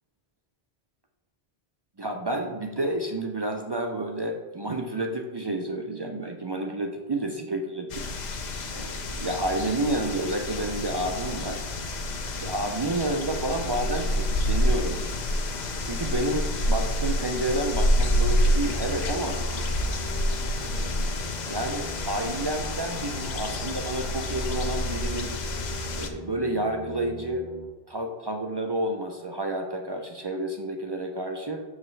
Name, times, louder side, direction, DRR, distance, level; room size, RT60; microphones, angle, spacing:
voice 1, 2.0-8.0 8.7-11.6 12.4-15.0 15.8-19.4 20.3-20.5 20.8-20.9 21.5-25.3 26.0-27.4 27.9-31.6, right 1 dB, 45° right, 3 dB, 0.3 m, -30 dB
sound 1, 7.9-26.1, left 1 dB, 50° left, 0.6 m, -28 dB
sound 2, 18.6-27.7, equal, 70° left, 1.2 m, -39 dB
6.4 x 4.8 x 3.2 m, 1.2 s
omnidirectional pair, 1.1 m